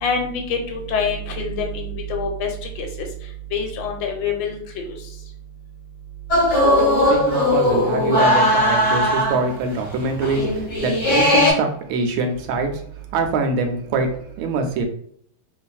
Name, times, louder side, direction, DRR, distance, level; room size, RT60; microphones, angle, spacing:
voice 1, 0.0-2.5 2.8-2.9 3.5-5.0, left 4 dB, 75° left, 3 dB, 1.2 m, -25 dB
sound 1, 6.3-9.5 9.8-9.9 10.1-11.5, left 1 dB, 45° left, 1.2 m, -18 dB
voice 2, 7.1-12.7 13.1-14.1 14.4-14.8, right 3 dB, 85° right, 5 dB, 1.4 m, -24 dB
3.2 x 2.5 x 2.3 m, 0.63 s
omnidirectional pair, 2.2 m